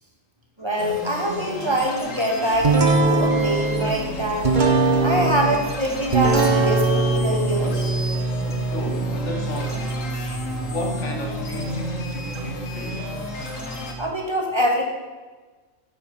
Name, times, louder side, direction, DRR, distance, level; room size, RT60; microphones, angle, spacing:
voice 1, 0.6-4.5 5.0-7.9 14.0-14.8, equal, 20° right, 0 dB, 2.5 m, -24 dB
sound 1, 0.8-13.9, left 2 dB, 85° left, 2.2 m, -33 dB
sound 2, 2.6-14.1, right 3 dB, 40° right, 1.3 m, -23 dB
voice 2, 8.7-10.1 10.6-13.1, left 1 dB, 70° left, 3 dB, 2.0 m, -32 dB
14.0 x 9.8 x 5.8 m, 1.3 s
omnidirectional pair, 1.3 m